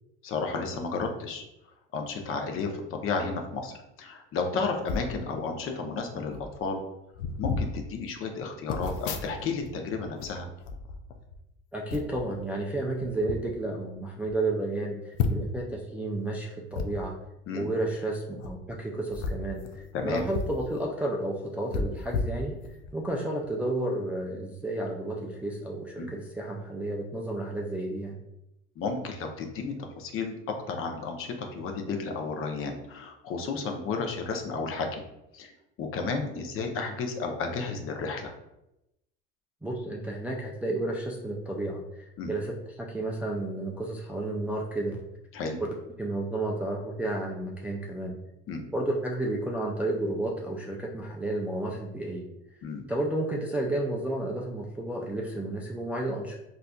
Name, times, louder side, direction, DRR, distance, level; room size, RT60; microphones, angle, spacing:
voice 1, 0.2-1.4 1.9-6.8 7.4-10.5 17.5-17.7 19.9-20.2 26.0-26.1 28.8-35.0 35.3-35.5 35.8-38.3 42.2-42.3 45.3-45.6 48.5-48.7 52.6-52.8, left 4 dB, 45° left, 4 dB, 0.6 m, -32 dB
sound 1, 4.8-5.1 6.0-6.1 6.3-6.6 7.1-7.7 8.7-9.7 10.0-11.4 11.9-12.2 13.0-13.4 13.9-14.0 14.3-14.4 15.1-15.6 16.7-16.9 18.3-18.5 19.1-20.6 20.9-21.0 21.7-22.9 23.4-23.6, left 4 dB, 85° left, 0.5 m, -32 dB
voice 2, 11.7-17.1 17.5-22.6 22.9-28.2 39.6-45.0 46.0-48.2 48.7-52.2 52.9-56.4, right 2 dB, 5° right, -2 dB, 0.3 m, -32 dB
4.0 x 2.5 x 2.2 m, 0.88 s
supercardioid pair, 100°, 31 cm